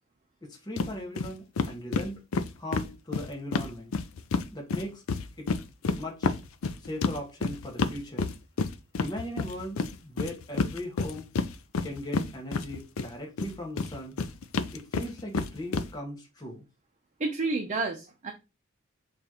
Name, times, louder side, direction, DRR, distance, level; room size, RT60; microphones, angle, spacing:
voice 1, 0.4-2.2 2.6-3.9 4.5-5.0 5.4-5.5 6.0-6.4 6.8-8.3 9.0-11.3 11.8-14.2 14.7-16.6, left 1 dB, 20° left, 1.0 m, -38 dB
sound 1, 0.8-0.9 1.2-1.3 1.6-4.5 4.7-13.1 13.4-15.9, left 4 dB, 75° left, 0.4 m, -29 dB
voice 2, 17.2-18.3, right 3 dB, 35° right, 0.6 m, -30 dB
6.7 x 2.5 x 2.9 m
head